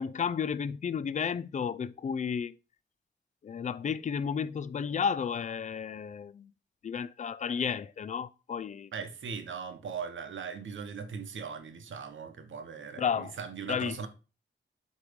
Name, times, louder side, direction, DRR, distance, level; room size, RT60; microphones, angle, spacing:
voice 1, 0.0-2.6 3.4-6.5 6.8-8.9 13.0-13.3 13.7-14.0, left 7 dB, 40° left, 0.4 m, -32 dB
voice 2, 8.9-14.1, right 6 dB, 75° right, 1.0 m, -39 dB
8.2 x 3.2 x 5.0 m
wide cardioid pair, 140°, 20 cm